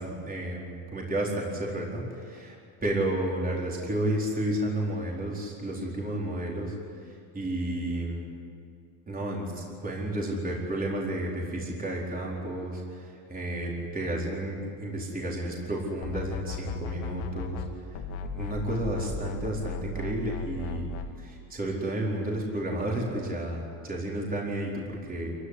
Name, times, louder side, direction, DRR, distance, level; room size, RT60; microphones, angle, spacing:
voice 1, 0.0-2.6 2.8-6.8 7.3-8.3 9.1-17.6 18.3-20.9 21.2-25.4, right 1 dB, 20° right, -3 dB, 4.5 m, -31 dB
sound 1, 16.0-17.7 17.9-21.1, left 4 dB, 70° left, 2.2 m, -35 dB
27.0 x 16.5 x 9.9 m, 2.4 s
cardioid pair, 135°, 48 cm